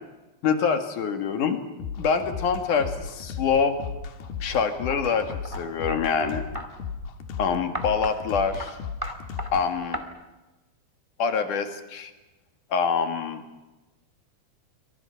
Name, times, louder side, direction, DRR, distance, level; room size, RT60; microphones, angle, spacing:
voice 1, 0.4-1.6 2.0-3.8 4.4-6.4 7.4-8.7 9.5-10.0 11.2-12.1 12.7-13.4, left 6 dB, 55° left, 6 dB, 3.0 m, -25 dB
sound 1, 1.8-9.7, left 6 dB, 75° left, 3.4 m, -35 dB
sound 2, 4.9-6.7 7.7-8.2 8.6-8.7 9.0-9.5 9.9-10.0, right 1 dB, 20° right, 0.6 m, -36 dB
28.0 x 25.0 x 5.8 m, 1.1 s
omnidirectional pair, 4.6 m